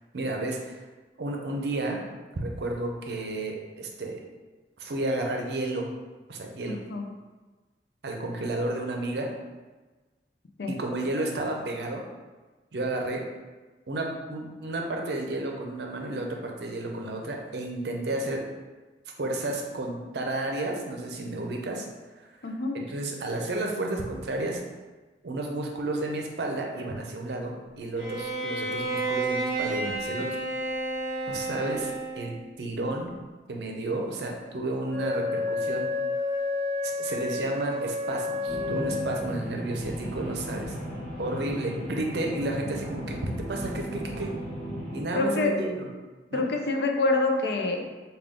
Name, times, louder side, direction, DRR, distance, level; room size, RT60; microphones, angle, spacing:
voice 1, 0.1-0.8 1.2-2.0 2.3-4.2 4.8-5.9 6.3-6.8 8.0-9.3 10.7-12.0 12.7-13.2 13.9-18.4 19.2-21.9 22.7-24.6 25.2-30.3 31.3-33.1 33.5-35.9 36.8-40.8 41.2-44.3 44.9-45.9 46.3-46.5, right 2 dB, 75° right, 1 dB, 0.5 m, -32 dB
voice 2, 6.7-7.1 10.6-10.8 22.4-22.8 45.1-45.6 46.3-47.8, left 2 dB, 70° left, 3 dB, 0.4 m, -26 dB
Bowed string instrument, 28.0-32.4, right 2 dB, 20° right, 1.4 m, -31 dB
Wind instrument woodwind instrument, 34.9-39.5, left 3 dB, 90° left, 1.2 m, -30 dB
sound 1, 38.5-45.0, equal, 15° left, 1.0 m, -36 dB
3.5 x 2.3 x 3.6 m, 1.2 s
head